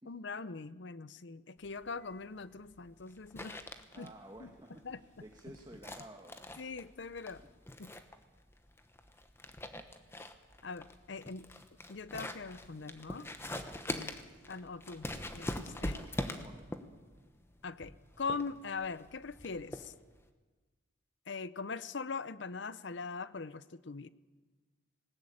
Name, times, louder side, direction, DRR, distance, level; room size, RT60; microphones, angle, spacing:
voice 1, 0.1-3.6 4.0-4.1 4.4-4.5 4.8-5.0 6.6-7.4 7.8-7.9 10.6-11.5 11.9-13.3 13.9-14.2 14.5-15.1 15.3-16.0 17.6-19.9 21.3-24.1, left 4 dB, 60° left, 16 dB, 0.7 m, -41 dB
sound 1, 1.6-20.3, left 1 dB, 10° left, 1.1 m, -44 dB
voice 2, 3.9-6.4 7.4-7.5 14.2-14.4 15.9-16.7, right 1 dB, 20° right, 2 dB, 1.4 m, -53 dB
19.5 x 18.5 x 8.7 m, 1.3 s
head